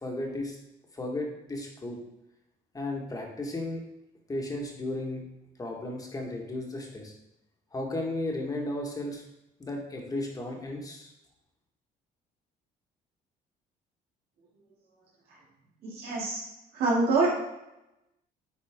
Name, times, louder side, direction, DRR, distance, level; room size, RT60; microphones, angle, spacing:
voice 1, 0.0-0.6 0.9-2.0 2.7-3.8 4.3-5.2 5.6-7.1 7.7-9.2 9.6-11.1, left 1 dB, 20° left, 1 dB, 1.6 m, -34 dB
voice 2, 15.8-16.4 16.7-17.4, right 3 dB, 65° right, -4 dB, 2.8 m, -25 dB
9.3 x 4.2 x 3.6 m, 0.89 s
cardioid pair, 110°, 17 cm